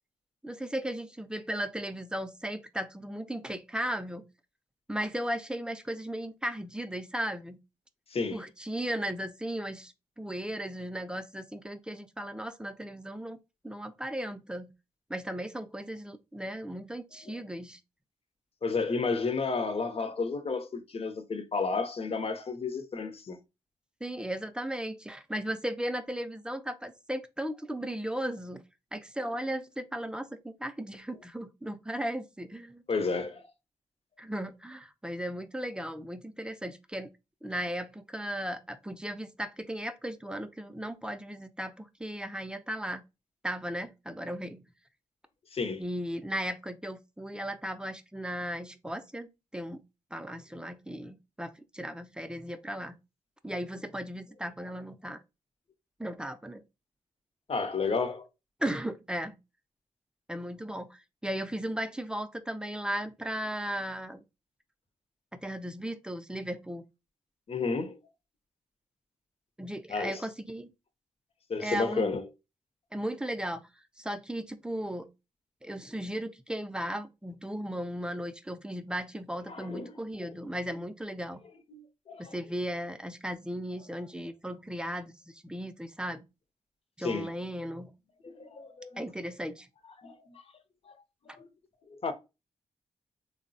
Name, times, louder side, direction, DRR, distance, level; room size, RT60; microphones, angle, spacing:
voice 1, 0.4-4.2 4.9-7.6 8.3-13.4 13.6-14.7 15.1-17.8 24.0-28.6 28.9-32.8 34.2-37.1 37.4-43.0 43.4-44.6 45.8-49.3 49.5-49.8 50.1-53.0 53.4-55.2 56.0-56.6 58.6-59.4 60.3-64.2 65.3-66.8 69.6-70.7 71.6-72.1 72.9-73.6 74.0-75.1 75.6-81.4 82.2-86.2 87.0-87.9 89.0-89.7, equal, 5° right, 0.4 m, -36 dB
voice 2, 8.1-8.4 18.6-23.4 32.9-33.5 45.5-45.8 57.5-58.3 67.5-68.0 69.9-70.2 71.5-72.3 79.5-79.9 80.2-80.3 81.7-82.3 87.0-87.3 88.2-89.0 90.0-90.5 90.9-91.0 91.3-91.5 91.9-92.1, left 4 dB, 50° left, 0.6 m, -32 dB
3.2 x 2.0 x 2.6 m
cardioid pair, 50°, 13 cm